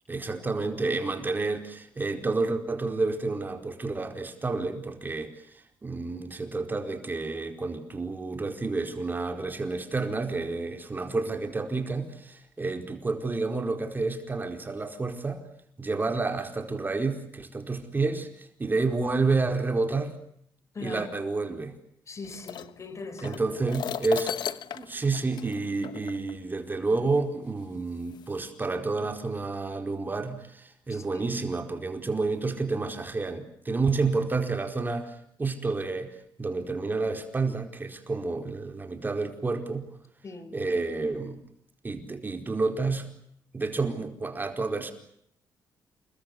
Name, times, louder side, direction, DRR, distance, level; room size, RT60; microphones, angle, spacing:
voice 1, 0.1-15.4 15.8-20.1 20.8-21.7 23.2-24.3 24.7-39.9 40.5-41.4 41.8-43.1 43.5-44.9, right 3 dB, 25° right, 4.7 m, -30 dB
voice 2, 20.7-21.1 22.1-23.4 30.9-31.2 40.2-40.6, left 3 dB, 40° left, 4.8 m, -41 dB
sound 1, 22.2-26.4 27.3-27.4 28.1-28.4, left 9 dB, 70° left, 1.3 m, -36 dB
28.5 x 23.0 x 8.0 m
cardioid pair, 100°, 8 cm